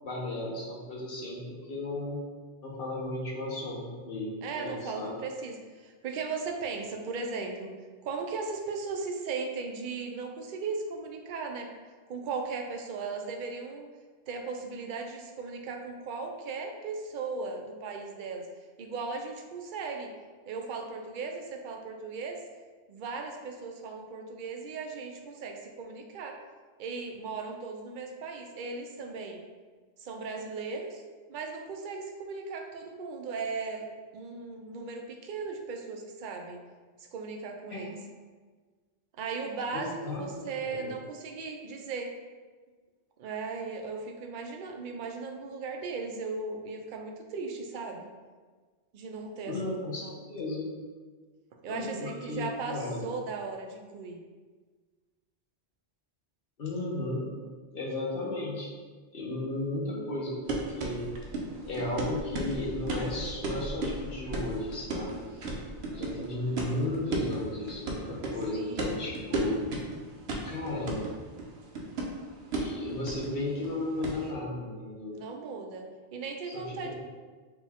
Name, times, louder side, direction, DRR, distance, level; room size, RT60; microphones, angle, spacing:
voice 1, 0.0-2.2 2.6-5.2 37.7-37.9 39.7-40.2 40.6-40.9 49.4-50.7 51.7-53.1 56.6-57.3 57.7-58.7 59.1-61.1 61.6-65.2 65.9-69.6 70.4-71.0 72.5-75.1 76.5-76.9, left 2 dB, 55° left, -4 dB, 1.0 m, -34 dB
voice 2, 4.4-7.7 8.0-11.7 12.1-13.9 14.3-18.5 18.8-20.1 20.5-22.4 22.9-26.4 26.8-29.4 30.0-31.0 31.3-33.9 34.1-36.6 37.0-38.0 39.2-42.1 43.2-48.1 48.9-49.7 50.0-50.2 51.6-54.2 68.5-68.9 75.1-76.9, right 4 dB, 60° right, 3 dB, 0.6 m, -37 dB
sound 1, 60.5-74.3, right 2 dB, 75° right, 1.0 m, -35 dB
4.9 x 2.3 x 3.4 m, 1.4 s
omnidirectional pair, 1.1 m